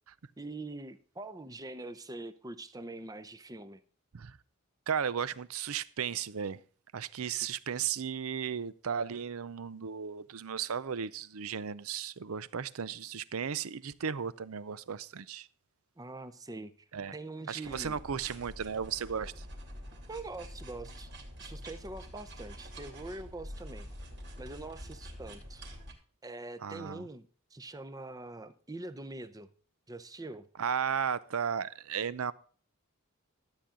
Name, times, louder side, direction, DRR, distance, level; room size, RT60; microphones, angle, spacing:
voice 1, 0.4-3.8 7.4-7.5 16.0-16.7 17.1-18.0 20.1-21.1 21.4-23.9 24.4-25.7 26.2-29.5 29.9-30.5, right 2 dB, 15° right, 0.7 m, -44 dB
voice 2, 4.9-6.6 6.9-15.5 16.9-17.1 17.5-19.4 26.6-27.0 30.6-32.3, right 7 dB, 75° right, 0.6 m, -35 dB
sound 1, 17.6-25.9, equal, 55° right, 2.8 m, -46 dB
13.0 x 8.6 x 3.7 m
head